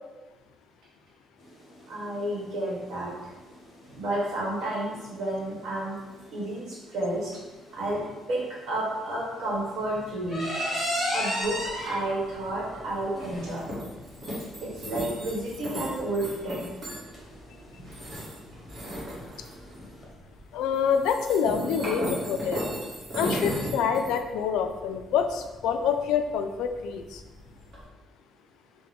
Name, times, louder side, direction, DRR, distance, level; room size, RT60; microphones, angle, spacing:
sound 1, 1.4-20.0, equal, 15° left, 0.9 m, -37 dB
voice 1, 1.9-3.1 3.9-6.0 6.3-7.3 7.7-8.0 8.3-10.5 11.1-13.7 14.6-16.7 23.5-23.6, right 1 dB, 55° right, -5 dB, 1.3 m, -31 dB
sound 2, 11.4-27.8, equal, 40° right, 1.4 m, -37 dB
voice 2, 20.5-22.6 23.1-27.2, left 7 dB, 85° left, 7 dB, 0.3 m, -26 dB
4.5 x 2.1 x 3.5 m, 1.2 s
cardioid pair, 170°, 0 cm